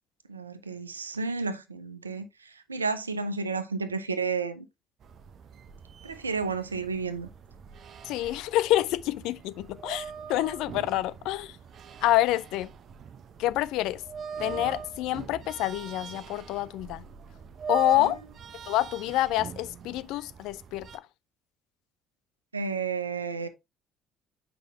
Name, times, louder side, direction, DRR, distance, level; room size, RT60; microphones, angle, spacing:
voice 1, 0.3-4.7 6.0-7.3 17.9-18.2 22.5-23.5, right 4 dB, 85° right, 0.6 m, -32 dB
sound 1, 5.0-21.0, right 6 dB, 45° right, 0.6 m, -42 dB
voice 2, 8.0-11.5 12.0-12.7 13.4-14.0 14.4-17.0 17.7-18.2 18.7-20.9, left 15 dB, 60° left, 0.4 m, -27 dB
8.2 x 5.1 x 3.2 m
figure-of-eight pair, 50°, 0 cm